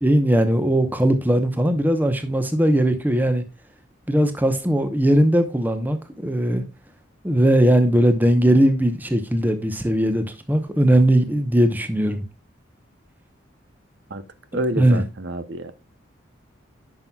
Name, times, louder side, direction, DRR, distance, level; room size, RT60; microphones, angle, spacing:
voice 1, 0.0-3.4 4.1-6.6 7.2-12.2 14.8-15.0, right 1 dB, 10° right, 0.8 m, -19 dB
voice 2, 14.5-15.7, right 1 dB, 60° right, 0.7 m, -28 dB
9.4 x 6.1 x 2.3 m
head